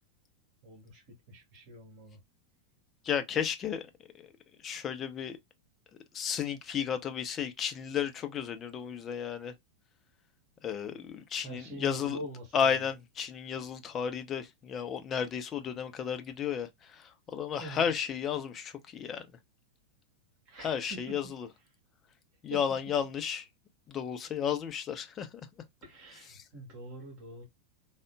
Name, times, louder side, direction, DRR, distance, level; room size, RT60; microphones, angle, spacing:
voice 1, 0.6-1.0 1.3-2.2 11.4-12.8 17.6-17.9 20.5-21.1 22.5-22.6 25.8-27.4, right 1 dB, 40° right, 1.6 m, -44 dB
voice 2, 3.0-3.9 4.6-5.4 6.1-9.5 10.6-12.2 12.5-19.3 20.6-21.5 22.4-23.5 23.9-25.3 26.3-26.4, left 8 dB, 25° left, 0.5 m, -33 dB
3.5 x 2.1 x 2.2 m
figure-of-eight pair, 90°, 0 cm